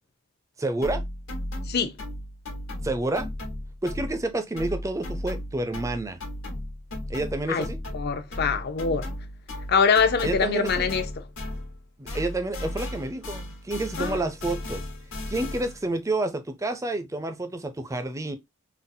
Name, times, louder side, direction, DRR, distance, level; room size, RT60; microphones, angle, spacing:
voice 1, 0.6-1.0 2.8-3.3 3.8-6.2 7.1-7.8 10.2-10.9 12.0-14.8 15.3-18.4, right 2 dB, 15° right, 0.4 m, -29 dB
sound 1, 0.8-4.3 4.6-11.8 12.1-15.8, left 1 dB, 75° left, 1.2 m, -35 dB
voice 2, 1.7-2.0 7.5-7.7 7.9-9.1 9.7-11.0 14.0-14.2, left 5 dB, 50° left, 0.5 m, -23 dB
3.9 x 2.0 x 2.6 m
head